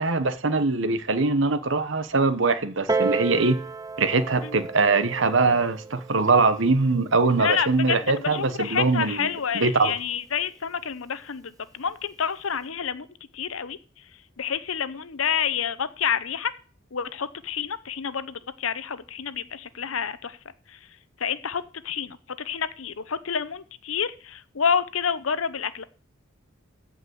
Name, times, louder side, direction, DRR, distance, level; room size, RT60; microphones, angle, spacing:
voice 1, 0.0-3.6 4.0-9.3 9.5-9.9, right 3 dB, 65° right, 1.0 m, -22 dB
Piano, 2.9-8.1 8.9-9.0, right 4 dB, 15° right, 0.6 m, -32 dB
voice 2, 7.4-13.1 13.3-13.8 14.4-16.5 16.9-20.4 20.7-20.8 21.2-25.8, left 7 dB, 85° left, 0.8 m, -29 dB
14.5 x 5.0 x 8.0 m
head